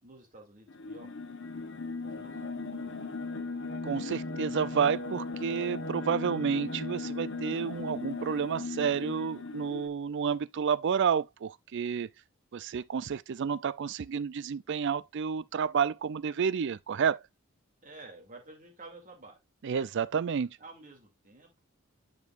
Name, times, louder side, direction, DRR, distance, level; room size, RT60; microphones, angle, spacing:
voice 1, 0.0-1.2 2.0-2.4 17.8-19.4 19.7-19.9 20.6-21.6, right 2 dB, 40° right, 2.5 m, -50 dB
sound 1, 0.7-9.9, left 3 dB, 60° left, 1.0 m, -37 dB
voice 2, 3.8-12.1 12.5-17.2 19.6-20.6, right 7 dB, 55° right, 0.4 m, -30 dB
9.5 x 5.3 x 2.5 m
head